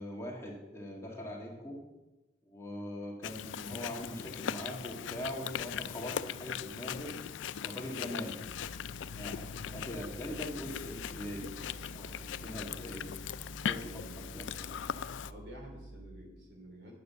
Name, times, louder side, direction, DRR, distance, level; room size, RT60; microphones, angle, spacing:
voice 1, 0.0-1.8 2.5-7.1 7.6-8.4 9.1-11.5 11.9-13.1 13.6-14.8, equal, 15° left, -2 dB, 1.9 m, -42 dB
Chewing mastication, 3.2-15.3, left 8 dB, 85° left, 0.4 m, -40 dB
sound 1, 8.4-16.2, right 2 dB, 30° right, 1.0 m, -50 dB
voice 2, 13.6-14.5 15.2-17.0, equal, 65° right, 1 dB, 3.1 m, -51 dB
9.4 x 7.9 x 6.8 m, 1.0 s
head